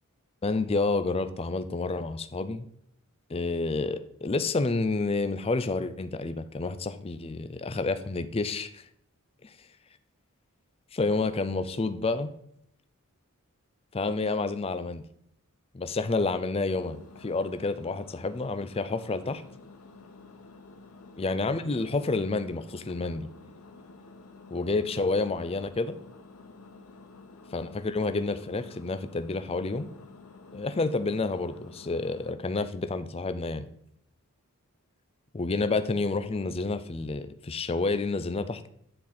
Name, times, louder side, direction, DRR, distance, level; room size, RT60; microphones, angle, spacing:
voice 1, 0.4-2.7 3.3-8.8 9.4-9.5 10.9-12.3 13.9-15.0 15.7-19.4 21.2-23.3 24.5-26.0 27.5-29.9 30.5-33.7 35.3-38.7, left 3 dB, 25° left, 11 dB, 0.4 m, -29 dB
Engine, 16.7-32.3, left 3 dB, 90° left, 0.8 m, -50 dB
10.0 x 4.4 x 3.9 m, 0.73 s
head